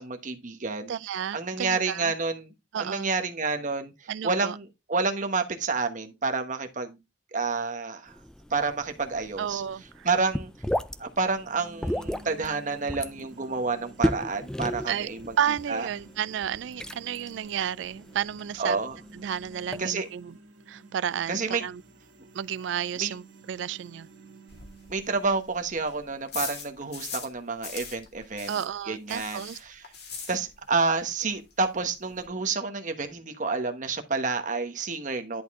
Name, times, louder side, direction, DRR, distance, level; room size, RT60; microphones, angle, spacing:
voice 1, 0.0-0.9 1.3-2.5 2.8-7.0 7.3-8.2 8.5-9.6 10.0-10.5 11.0-15.3 15.7-15.9 18.6-18.9 19.8-20.1 21.3-21.6 23.0-23.1 24.9-28.6 28.9-29.8 30.3-35.4, right 4 dB, 40° right, 1.1 m, -29 dB
voice 2, 0.9-2.1 2.7-3.1 4.1-4.6 9.4-10.1 14.9-15.1 15.4-18.8 19.1-20.4 20.7-21.8 22.3-24.1 28.5-29.6, right 9 dB, 70° right, 0.3 m, -32 dB
sound 1, 8.1-19.9, equal, 5° left, 0.3 m, -35 dB
sound 2, 11.2-27.2, right 3 dB, 90° right, 2.0 m, -52 dB
sound 3, 24.5-27.4 27.6-30.8 31.1-31.2 31.5-31.6 31.8-32.3, left 5 dB, 55° left, 2.2 m, -40 dB
10.5 x 4.3 x 3.6 m
head